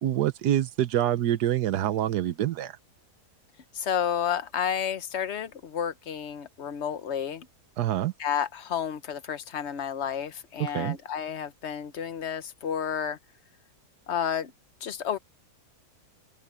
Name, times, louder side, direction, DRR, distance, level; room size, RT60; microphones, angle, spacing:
voice 1, 0.0-2.8 7.8-8.1 10.6-11.0, right 12 dB, 85° right, 1.4 m, -26 dB
voice 2, 3.7-7.5 8.2-13.2 14.1-14.5 14.8-15.2, left 8 dB, 50° left, 1.0 m, -31 dB
open air
omnidirectional pair, 1.7 m